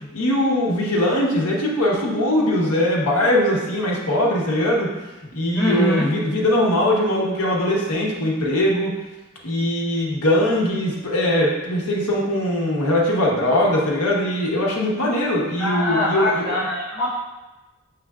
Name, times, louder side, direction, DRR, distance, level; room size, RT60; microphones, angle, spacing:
voice 1, 0.1-4.9 5.3-8.9 9.4-16.4, left 1 dB, 85° left, -3 dB, 0.9 m, -21 dB
voice 2, 5.5-6.1 15.6-17.1, left 1 dB, 15° left, -11 dB, 0.8 m, -23 dB
5.9 x 3.3 x 2.3 m, 1.1 s
head